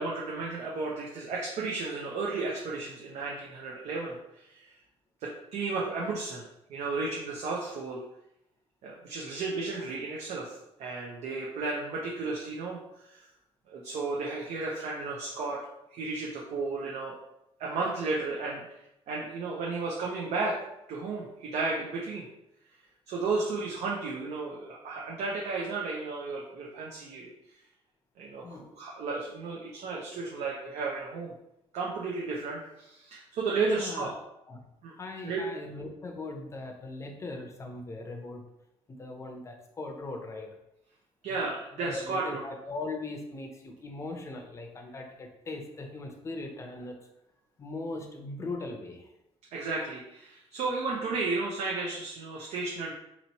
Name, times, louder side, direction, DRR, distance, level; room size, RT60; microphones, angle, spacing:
voice 1, 0.0-4.8 5.2-8.0 8.8-13.3 13.7-15.6 15.9-17.2 17.6-20.6 20.9-22.3 23.1-27.3 28.2-31.3 31.7-34.1 34.8-34.9 35.2-35.4 41.2-42.4 49.5-52.9, right 3 dB, 75° right, -3 dB, 0.7 m, -33 dB
voice 2, 33.5-34.6 34.9-38.4 38.9-40.5 41.3-47.0 47.6-49.1, left 2 dB, 25° left, 3 dB, 0.6 m, -39 dB
4.1 x 3.0 x 2.8 m, 0.85 s
cardioid pair, 140°, 11 cm